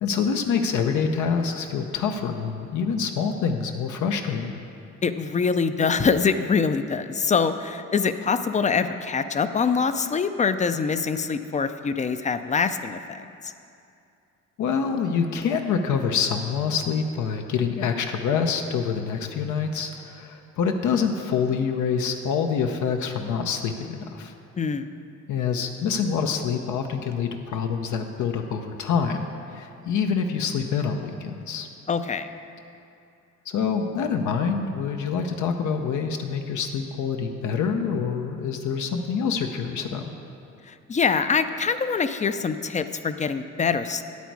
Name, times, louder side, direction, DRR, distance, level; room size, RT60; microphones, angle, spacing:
voice 1, 0.0-4.5 14.6-24.3 25.3-31.7 33.5-40.1, left 6 dB, 75° left, 4 dB, 0.7 m, -26 dB
voice 2, 5.0-13.5 24.6-24.9 31.9-32.3 40.7-44.0, left 5 dB, 25° left, 11 dB, 0.4 m, -24 dB
9.4 x 8.3 x 4.7 m, 2.6 s
cardioid pair, 90°, 30 cm